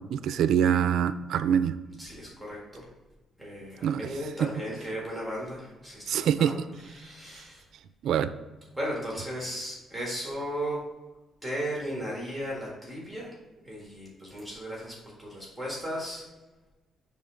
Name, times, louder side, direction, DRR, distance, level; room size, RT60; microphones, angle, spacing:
voice 1, 0.1-1.8 3.8-4.1 4.4-4.5 6.1-6.7 8.0-8.3, right 9 dB, 75° right, 13 dB, 0.3 m, -24 dB
voice 2, 2.0-2.8 3.4-6.6 7.0-7.6 8.8-10.8 11.4-13.3 13.6-16.3, equal, ahead, -4 dB, 1.6 m, -36 dB
6.9 x 3.5 x 5.0 m, 1.2 s
cardioid pair, 140°, 0 cm